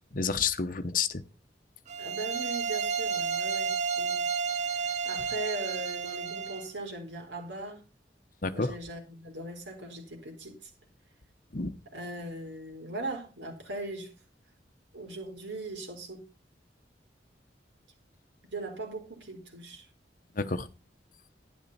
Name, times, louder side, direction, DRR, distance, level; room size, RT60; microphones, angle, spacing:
voice 1, 0.1-1.2 8.4-8.7 11.5-11.7 20.4-20.7, left 5 dB, 50° left, 0.9 m, -29 dB
sound 1, 1.9-6.7, right 5 dB, 40° right, 1.2 m, -31 dB
voice 2, 2.0-4.2 4.8-7.8 8.5-10.7 11.9-14.1 14.9-16.3 18.5-19.9 20.4-20.6, right 2 dB, 90° right, 4.2 m, -39 dB
12.0 x 10.0 x 4.2 m
head